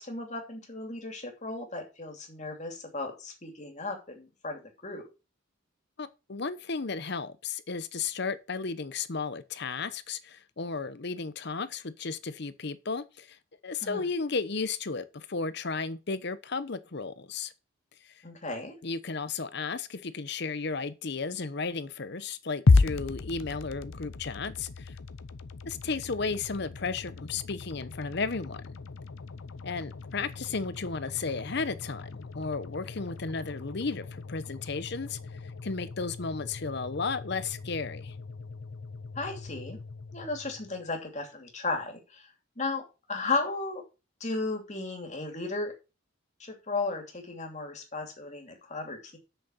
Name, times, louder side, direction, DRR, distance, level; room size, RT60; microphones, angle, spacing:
voice 1, 0.0-5.0 13.8-14.1 18.2-18.7 39.2-39.8 40.1-42.3 42.6-42.8 43.1-43.8 44.2-45.7 46.4-49.2, left 3 dB, 35° left, 2.8 m, -35 dB
voice 2, 6.0-13.4 13.6-17.5 18.0-18.2 18.8-25.0 25.7-28.6 29.6-35.2 35.6-38.1, left 4 dB, 55° left, 0.9 m, -34 dB
sound 1, 22.7-40.9, left 3 dB, 85° left, 0.7 m, -33 dB
8.0 x 6.4 x 5.7 m
head